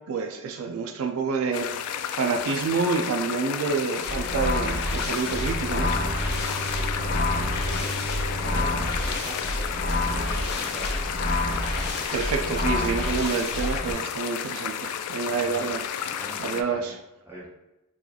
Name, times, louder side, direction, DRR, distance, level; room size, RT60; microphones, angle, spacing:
voice 1, 0.1-6.0 11.5-15.8 16.4-16.9, right 5 dB, 70° right, 4 dB, 0.3 m, -28 dB
sound 1, 1.5-16.6, left 8 dB, 90° left, 0.3 m, -32 dB
sound 2, 4.0-13.9, left 1 dB, 50° left, 0.6 m, -28 dB
Bowed string instrument, 5.2-10.1, right 1 dB, 25° left, 1.1 m, -36 dB
voice 2, 6.6-11.0 15.2-17.5, right 1 dB, 10° right, -7 dB, 1.0 m, -43 dB
3.0 x 2.3 x 3.8 m, 0.96 s
head